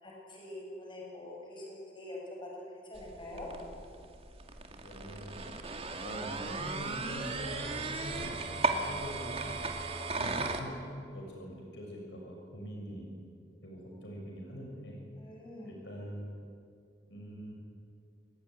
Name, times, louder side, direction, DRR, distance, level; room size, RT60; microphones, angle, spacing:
voice 1, 0.0-3.5 15.2-15.7, left 1 dB, 25° left, -2 dB, 7.8 m, -45 dB
sound 1, 2.9-10.6, right 3 dB, 35° right, 2.3 m, -36 dB
voice 2, 4.8-8.4 8.6-9.5 10.1-10.8 11.1-13.1 13.6-15.0 15.6-16.3 17.1-17.5, equal, 70° left, 0 dB, 6.7 m, -44 dB
28.5 x 18.5 x 10.0 m, 2.4 s
head